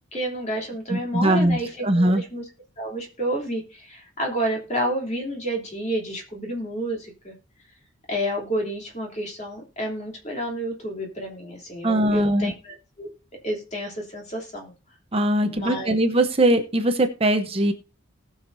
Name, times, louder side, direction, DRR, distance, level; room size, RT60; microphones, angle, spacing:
voice 1, 0.1-2.4 2.8-7.3 8.1-13.1 13.4-14.7 15.4-16.0, right 1 dB, 35° left, 1 dB, 3.0 m, -30 dB
voice 2, 0.9-2.2 11.8-12.5 15.1-17.7, right 1 dB, 25° right, 6 dB, 0.8 m, -21 dB
18.5 x 6.5 x 2.6 m, 0.33 s
head